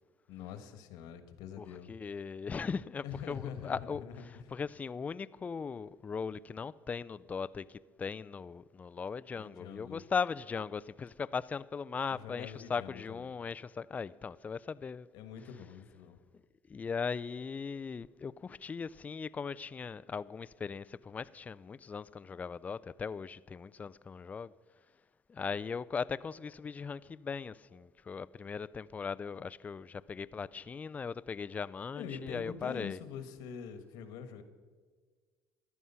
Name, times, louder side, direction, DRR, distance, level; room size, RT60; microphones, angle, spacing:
voice 1, 0.3-1.9 3.0-4.5 9.3-10.0 12.1-13.3 15.1-16.2 31.9-34.4, left 7 dB, 75° left, 1.4 m, -45 dB
voice 2, 1.6-4.0 4.5-15.1 16.7-24.5 25.3-33.0, left 5 dB, 20° left, 0.3 m, -39 dB
14.0 x 11.5 x 5.6 m
cardioid pair, 110°, 7 cm